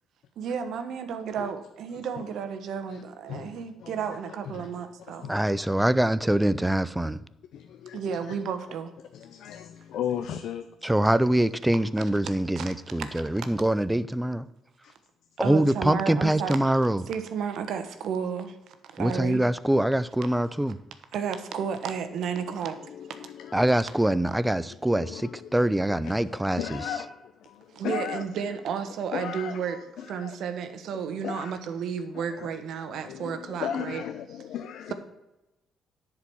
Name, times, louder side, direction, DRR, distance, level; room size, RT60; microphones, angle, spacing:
voice 1, 0.4-5.3 7.9-8.9 12.6-12.7 13.4-13.5 15.4-16.6 17.1-18.6 18.9-19.4 21.1-22.7 27.7-29.8 30.1-34.0, right 7 dB, 75° right, 1.2 m, -32 dB
voice 2, 3.3-4.0 4.5-5.6 7.5-8.0 9.1-10.7 14.8-14.9 22.8-23.8 24.9-28.2 29.1-30.3 31.2-31.5 32.1-32.5 32.9-34.9, left 9 dB, 75° left, 0.6 m, -37 dB
voice 3, 5.3-7.2 10.8-14.5 15.4-17.1 19.0-20.8 23.5-26.8, right 1 dB, 10° right, 0.5 m, -24 dB
10.5 x 4.9 x 7.0 m
cardioid pair, 90°, 0 cm